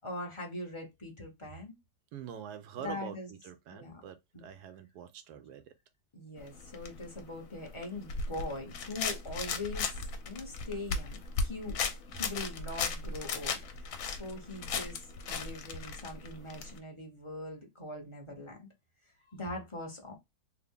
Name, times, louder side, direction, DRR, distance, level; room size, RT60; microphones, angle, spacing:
voice 1, 0.0-1.7 2.8-3.3 3.7-4.0 4.3-4.4 6.1-10.0 10.3-11.8 12.1-18.7 19.3-20.1, left 2 dB, 30° left, 0.6 m, -42 dB
voice 2, 2.1-5.7, right 8 dB, 80° right, 1.2 m, -45 dB
sound 1, 6.4-16.8, left 4 dB, 65° left, 1.0 m, -37 dB
3.4 x 2.1 x 3.5 m
omnidirectional pair, 1.7 m